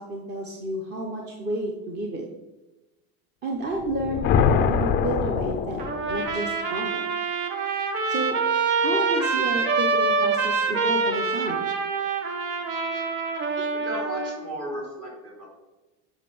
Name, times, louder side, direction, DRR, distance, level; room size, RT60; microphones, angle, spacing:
voice 1, 0.0-2.2 3.4-4.4 4.7-7.1 8.1-8.4 8.8-11.7, right 2 dB, 25° right, 1 dB, 0.7 m, -31 dB
sound 1, 3.8-6.4, left 6 dB, 25° left, 0.4 m, -24 dB
Trumpet, 5.8-14.4, right 4 dB, 70° right, 1.5 m, -25 dB
voice 2, 13.7-15.5, equal, 45° right, -1 dB, 3.3 m, -35 dB
7.3 x 5.4 x 6.8 m, 1.1 s
cardioid pair, 165°, 44 cm